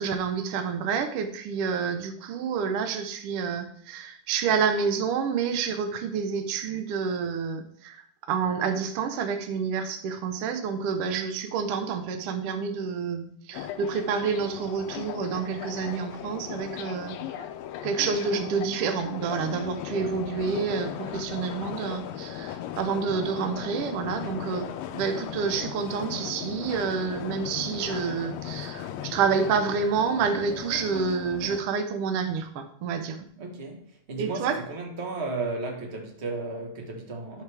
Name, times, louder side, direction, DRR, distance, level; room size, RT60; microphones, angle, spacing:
voice 1, 0.0-17.4 17.8-33.3 34.2-34.6, right 6 dB, 75° right, 1.4 m, -28 dB
sound 1, 13.5-31.6, left 10 dB, 80° left, 1.6 m, -37 dB
voice 2, 33.4-37.4, right 3 dB, 45° right, 0.8 m, -34 dB
11.5 x 5.8 x 3.4 m
omnidirectional pair, 3.5 m